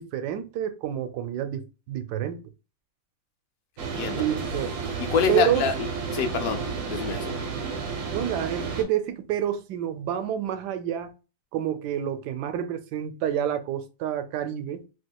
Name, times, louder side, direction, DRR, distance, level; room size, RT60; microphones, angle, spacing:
voice 1, 0.0-2.4 4.1-4.7 5.3-5.6 7.5-7.6 8.1-11.1 11.5-14.8, right 10 dB, 85° right, 1.2 m, -28 dB
voice 2, 3.8-4.2 5.0-5.9 6.1-7.4, left 6 dB, 75° left, 1.1 m, -27 dB
sound 1, 3.8-8.8, right 5 dB, 60° right, 1.0 m, -32 dB
sound 2, 4.4-8.7, right 1 dB, 35° right, 1.2 m, -47 dB
3.5 x 2.8 x 2.2 m
omnidirectional pair, 1.7 m